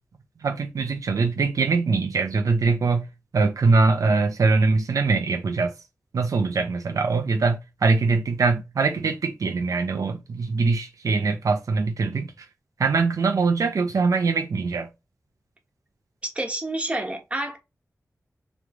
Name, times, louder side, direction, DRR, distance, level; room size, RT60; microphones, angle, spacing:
voice 1, 0.4-3.1 3.3-5.7 6.1-12.5 12.8-14.9, right 4 dB, 80° right, 0.6 m, -22 dB
voice 2, 16.3-17.6, right 1 dB, 20° right, 1.2 m, -28 dB
3.3 x 3.1 x 3.6 m
wide cardioid pair, 85°, 6 cm